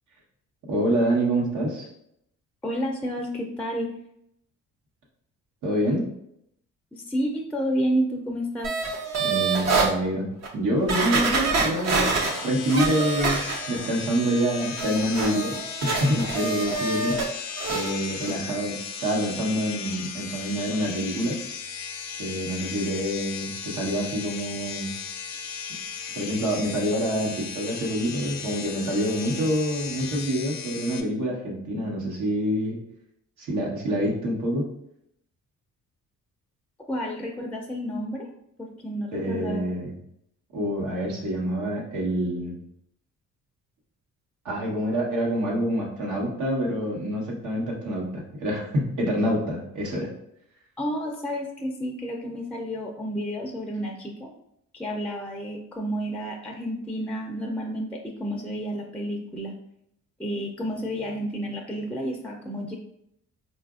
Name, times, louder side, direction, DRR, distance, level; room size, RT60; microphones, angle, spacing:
voice 1, 0.7-1.9 5.6-6.1 9.2-10.3 10.5-15.5 15.8-17.2 17.7-21.4 22.2-24.9 26.1-32.8 33.4-34.7 39.1-39.9 40.5-42.5 44.4-50.1, equal, 80° right, -2 dB, 1.1 m, -26 dB
voice 2, 2.6-3.9 6.9-8.8 36.9-38.3 38.6-39.6 50.8-54.3 54.7-59.5 60.2-62.8, equal, 5° left, 1 dB, 0.4 m, -30 dB
sound 1, 8.6-9.9 10.4-10.5 10.9-13.9 14.2-17.3 17.6-17.9 18.3-18.4, right 4 dB, 60° right, 0.7 m, -26 dB
sound 2, 12.1-31.0, left 6 dB, 60° left, 0.5 m, -36 dB
3.9 x 2.4 x 2.4 m, 0.75 s
cardioid pair, 90°, 30 cm